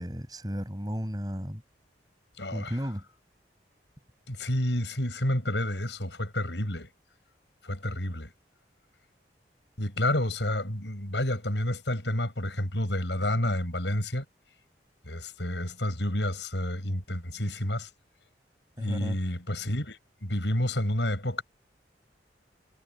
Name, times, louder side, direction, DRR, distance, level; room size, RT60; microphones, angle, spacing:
voice 1, 0.0-1.6 2.5-3.0 18.8-19.2, equal, 20° right, 7.6 m, -34 dB
voice 2, 2.4-2.7 4.3-6.9 7.6-8.3 9.8-14.2 15.1-17.9 18.8-21.4, left 1 dB, 75° left, 6.9 m, -29 dB
head